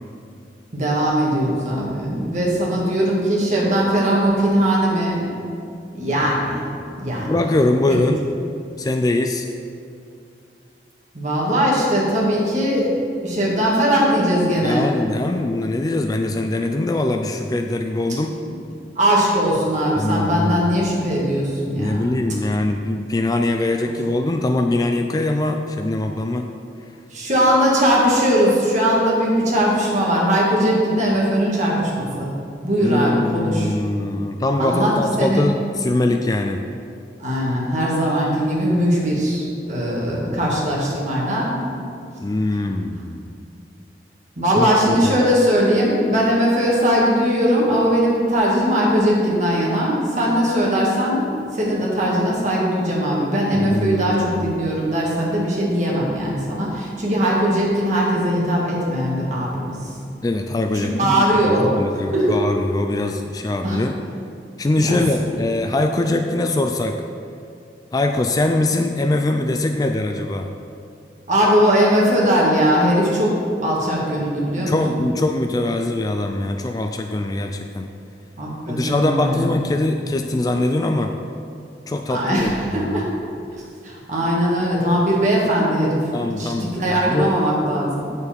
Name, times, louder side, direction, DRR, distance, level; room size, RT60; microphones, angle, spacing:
voice 1, 0.7-5.3 5.9-6.6 7.0-7.4 7.9-8.0 11.1-12.9 13.2-14.9 19.0-22.0 27.1-32.3 32.6-33.7 34.6-35.4 37.2-41.5 44.4-51.3 51.5-59.8 60.7-61.8 62.1-62.4 63.6-63.8 64.8-65.0 71.3-75.0 78.4-79.5 82.1-83.1 83.8-86.0 86.4-88.0, equal, 40° right, -4 dB, 1.9 m, -20 dB
voice 2, 7.2-8.2 8.8-9.5 14.6-18.4 20.0-20.7 21.8-26.5 32.8-36.6 42.2-43.4 44.6-45.2 53.5-54.7 60.2-64.0 64.6-67.0 67.9-70.5 74.7-77.9 78.7-81.1 81.9-83.1 86.1-87.3, left 2 dB, 20° left, 5 dB, 0.3 m, -22 dB
8.6 x 7.0 x 4.3 m, 2.5 s
head